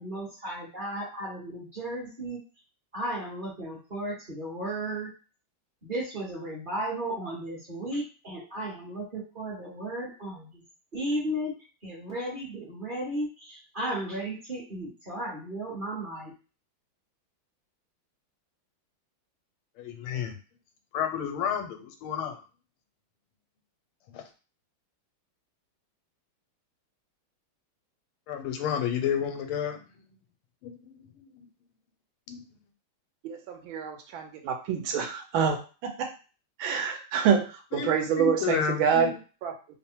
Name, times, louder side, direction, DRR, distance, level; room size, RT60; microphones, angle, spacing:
voice 1, 0.0-2.4 2.9-5.1 5.8-10.6 10.9-16.3, right 1 dB, 35° right, -4 dB, 0.9 m, -34 dB
voice 2, 19.8-20.4 20.9-22.4 24.1-24.2 28.3-29.8 30.6-31.5 32.3-32.4 37.7-39.2, left 8 dB, 85° left, 6 dB, 1.5 m, -31 dB
voice 3, 33.2-35.6 35.8-36.1 36.6-37.5 37.7-39.1 39.4-39.5, right 7 dB, 80° right, 4 dB, 1.5 m, -26 dB
3.5 x 2.0 x 4.3 m, 0.35 s
omnidirectional pair, 2.3 m